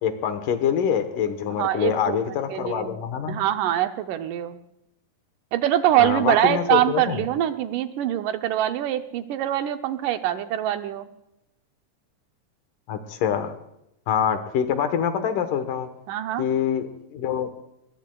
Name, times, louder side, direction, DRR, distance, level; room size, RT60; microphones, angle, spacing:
voice 1, 0.0-3.4 6.0-7.2 12.9-13.6 14.1-15.9 16.4-17.5, left 8 dB, 75° left, 8 dB, 2.7 m, -25 dB
voice 2, 1.5-3.0 3.3-4.6 5.5-11.1 16.1-16.4, right 12 dB, 75° right, 8 dB, 2.2 m, -24 dB
21.5 x 21.0 x 2.3 m, 0.84 s
omnidirectional pair, 3.9 m